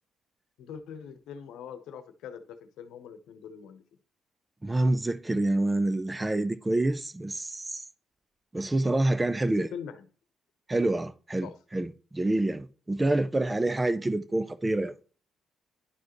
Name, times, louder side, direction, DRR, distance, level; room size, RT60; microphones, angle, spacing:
voice 1, 0.6-3.8 9.4-10.1 11.4-11.5, left 7 dB, 85° left, 0.9 m, -43 dB
voice 2, 4.6-7.8 8.5-9.7 10.7-14.9, right 2 dB, 15° right, 0.6 m, -27 dB
10.5 x 4.8 x 3.1 m
cardioid pair, 90°, 0 cm